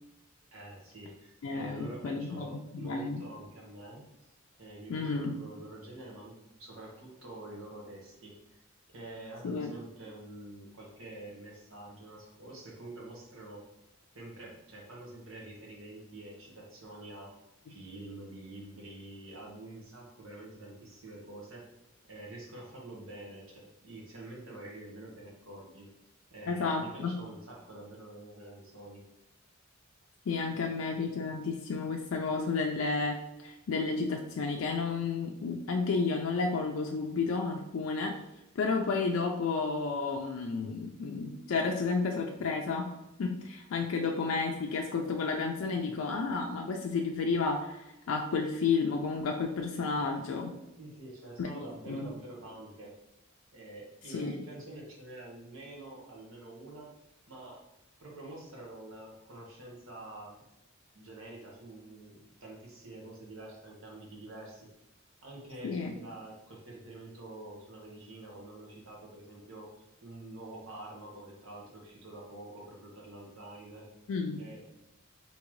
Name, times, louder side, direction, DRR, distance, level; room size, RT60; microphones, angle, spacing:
voice 1, 0.5-4.1 4.6-8.6 8.9-13.7 14.1-17.3 17.7-21.7 22.1-25.9 26.3-29.0 50.8-52.9 53.5-56.9 57.3-57.6 58.0-60.4 60.9-64.7 65.2-74.0 74.4-74.7, right 1 dB, 85° right, -2 dB, 1.1 m, -47 dB
voice 2, 1.4-3.2 4.9-5.4 9.4-9.7 26.5-27.1 30.3-38.2 38.6-42.9 43.2-50.5 51.4-51.5 51.9-52.1 54.1-54.3 65.6-65.9 74.1-74.4, left 4 dB, 80° left, 2 dB, 0.4 m, -31 dB
3.6 x 2.8 x 3.1 m, 0.90 s
head